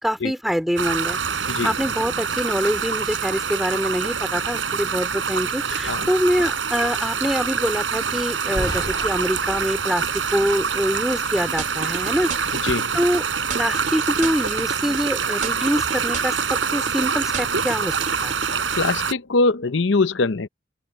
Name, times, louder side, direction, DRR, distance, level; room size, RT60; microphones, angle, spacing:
voice 1, 0.0-10.0 10.3-12.3 12.9-13.3 13.5-17.9 18.2-18.3, equal, ahead, 3.4 m, -24 dB
sound 1, 0.8-19.1, right 6 dB, 80° right, 4.9 m, -25 dB
sound 2, 8.6-11.5, equal, 20° left, 3.7 m, -35 dB
sound 3, 11.6-13.2 13.5-15.1 15.4-17.0 17.3-18.9, right 4 dB, 40° right, 2.7 m, -32 dB
voice 2, 18.8-20.5, left 3 dB, 75° left, 0.8 m, -22 dB
open air
head